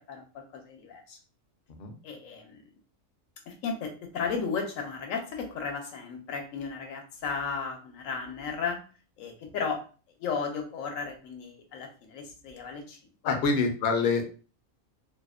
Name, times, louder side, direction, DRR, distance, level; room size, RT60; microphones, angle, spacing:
voice 1, 0.1-1.2 2.0-2.6 3.5-8.8 9.2-9.8 10.2-13.0 13.2-13.4, left 5 dB, 85° left, 3 dB, 1.0 m, -34 dB
voice 2, 13.2-14.2, left 4 dB, 60° left, 4 dB, 0.6 m, -26 dB
2.7 x 2.0 x 2.3 m, 0.37 s
omnidirectional pair, 1.4 m